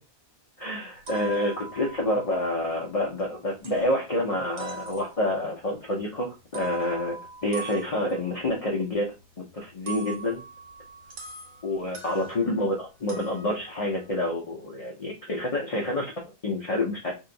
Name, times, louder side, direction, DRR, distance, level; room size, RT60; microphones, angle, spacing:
voice 1, 0.6-9.1 9.4-10.4 11.6-17.1, left 1 dB, 35° left, -1 dB, 0.6 m, -28 dB
sound 1, 1.0-3.3 3.6-4.2 4.6-5.5 6.4-12.7 13.1-14.1, right 3 dB, 90° right, 1.6 m, -42 dB
3.0 x 2.8 x 3.7 m, 0.27 s
omnidirectional pair, 1.4 m